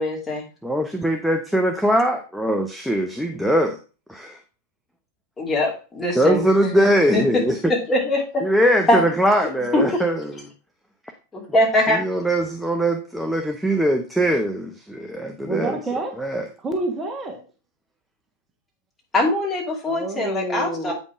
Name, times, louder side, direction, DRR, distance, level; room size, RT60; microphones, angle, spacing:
voice 1, 0.0-0.4 5.4-7.2 7.7-8.5 8.9-9.0 9.7-10.0 11.3-12.0 19.1-20.9, left 1 dB, 15° left, -1 dB, 2.7 m, -22 dB
voice 2, 0.6-3.8 4.1-4.4 6.2-7.7 8.4-10.3 11.9-15.8 16.2-16.5, right 1 dB, ahead, 4 dB, 0.7 m, -21 dB
voice 3, 15.4-16.1 16.6-17.4 19.9-20.9, right 2 dB, 20° right, 2 dB, 1.5 m, -28 dB
8.4 x 5.3 x 3.6 m, 0.34 s
figure-of-eight pair, 90°, 0 cm